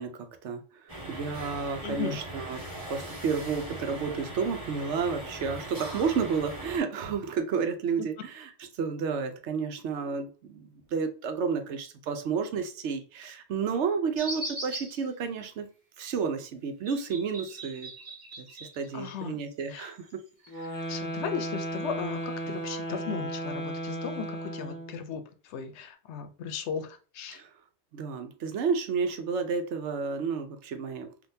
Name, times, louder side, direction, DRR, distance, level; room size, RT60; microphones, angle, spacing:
voice 1, 0.0-2.6 2.9-15.7 16.0-17.9 18.4-18.5 18.7-20.2 20.5-20.9 27.3-27.5 27.9-31.1, right 5 dB, 80° right, 7 dB, 1.0 m, -31 dB
sound 1, 0.9-6.8, right 1 dB, 35° right, 1.4 m, -40 dB
voice 2, 1.8-2.2 18.9-19.4 19.7-19.9 20.9-25.2 25.5-27.4, left 6 dB, 80° left, 8 dB, 0.9 m, -36 dB
sound 2, 14.2-15.1 16.9-19.3 19.6-20.8, right 1 dB, 50° right, 1.2 m, -40 dB
sound 3, 20.5-25.0, right 1 dB, 30° left, 0.4 m, -35 dB
3.7 x 2.6 x 2.6 m, 0.38 s
omnidirectional pair, 1.2 m